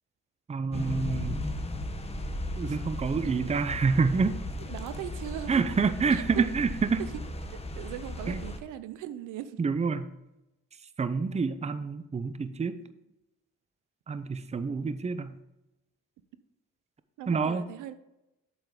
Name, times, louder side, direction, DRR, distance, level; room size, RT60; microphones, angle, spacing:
voice 1, 0.5-1.5 2.6-4.4 5.5-7.0 8.3-8.4 9.6-10.1 11.0-12.8 14.1-15.3 17.3-17.7, right 5 dB, 20° right, 12 dB, 0.6 m, -27 dB
sound 1, 0.7-8.6, left 1 dB, 20° left, 1.1 m, -36 dB
voice 2, 4.6-5.5 6.1-6.4 7.0-7.1 7.7-9.6 17.2-17.9, right 11 dB, 85° right, 13 dB, 0.7 m, -39 dB
7.8 x 7.0 x 3.7 m, 0.91 s
cardioid pair, 90°, 30 cm